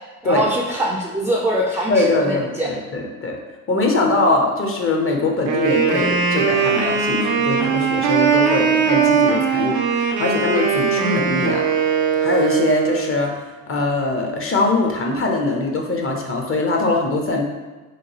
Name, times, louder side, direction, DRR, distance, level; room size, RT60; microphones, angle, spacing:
voice 1, 0.2-2.7, right 1 dB, 5° right, -1 dB, 0.3 m, -23 dB
voice 2, 1.9-3.4 3.7-11.7 12.2-13.4 13.7-17.4, left 2 dB, 35° left, 1 dB, 0.6 m, -22 dB
Wind instrument woodwind instrument, 5.4-13.1, right 6 dB, 80° right, 0.5 m, -19 dB
2.9 x 2.2 x 2.8 m, 1.3 s
hypercardioid pair, 55°, 39 cm